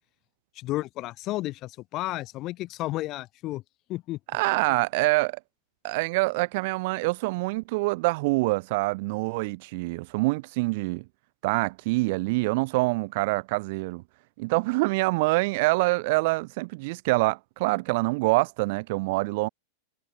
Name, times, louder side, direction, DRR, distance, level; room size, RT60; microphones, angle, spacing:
voice 1, 0.5-3.6 3.9-4.2, left 17 dB, 35° left, 5.0 m, -32 dB
voice 2, 4.3-5.4 5.8-11.0 11.4-14.0 14.4-19.5, right 24 dB, 50° right, 0.4 m, -25 dB
figure-of-eight pair, 90°, 0 cm